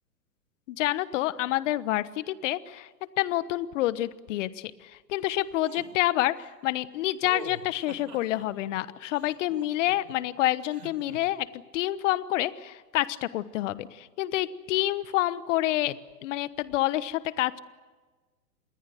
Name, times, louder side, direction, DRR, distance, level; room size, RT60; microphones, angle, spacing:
voice 1, 0.7-2.9 3.2-16.0 16.2-17.6, left 15 dB, 45° left, 16 dB, 1.2 m, -28 dB
sound 1, 5.6-5.9 7.2-8.5 9.1-10.1 10.7-11.2, right 6 dB, 75° right, 4.3 m, -44 dB
27.5 x 21.0 x 7.8 m, 1.3 s
hypercardioid pair, 130°, 49 cm